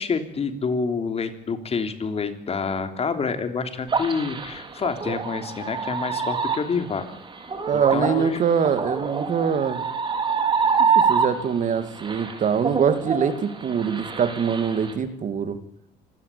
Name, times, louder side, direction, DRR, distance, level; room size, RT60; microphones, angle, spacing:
voice 1, 0.0-7.1 7.7-8.4, left 5 dB, 35° left, 8 dB, 3.4 m, -27 dB
sound 1, 3.9-11.7 12.0-14.9, right 5 dB, 30° right, 4.4 m, -25 dB
voice 2, 7.7-9.8 10.8-15.6, right 7 dB, 50° right, 11 dB, 2.6 m, -23 dB
26.0 x 18.0 x 8.7 m, 0.73 s
cardioid pair, 110°, 17 cm